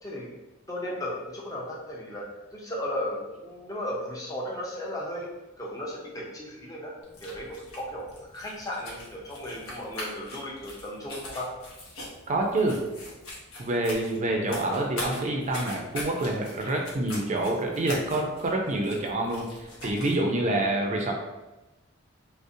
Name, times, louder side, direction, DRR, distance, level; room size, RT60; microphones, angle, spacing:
voice 1, 0.7-2.3 2.5-5.3 5.6-6.9 7.2-8.1 8.3-11.5, left 1 dB, 20° left, -3 dB, 0.5 m, -35 dB
sound 1, 7.0-20.2, left 1 dB, 90° left, 0.8 m, -42 dB
voice 2, 12.3-12.8 13.6-21.1, right 1 dB, 35° right, 1 dB, 0.4 m, -27 dB
2.5 x 2.0 x 2.6 m, 1.1 s
head